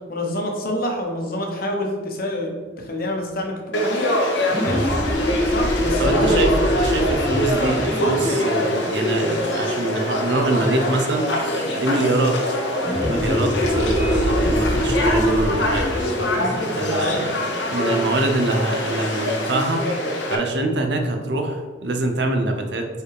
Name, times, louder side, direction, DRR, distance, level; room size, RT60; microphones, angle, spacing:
voice 1, 0.1-4.1 4.5-4.9 5.4-6.4 16.4-16.6, left 1 dB, 55° left, 1 dB, 1.1 m, -27 dB
Conversation / Crowd, 3.7-20.4, left 1 dB, 90° left, 1.1 m, -24 dB
sound 1, 4.5-9.8 12.8-18.1, equal, 10° left, 0.3 m, -25 dB
voice 2, 6.0-6.5 6.8-11.3 11.8-12.4 13.0-15.9 16.7-17.4 17.7-19.8 20.3-22.9, right 2 dB, 65° right, 4 dB, 0.8 m, -24 dB
4.8 x 4.4 x 4.8 m, 1.4 s
head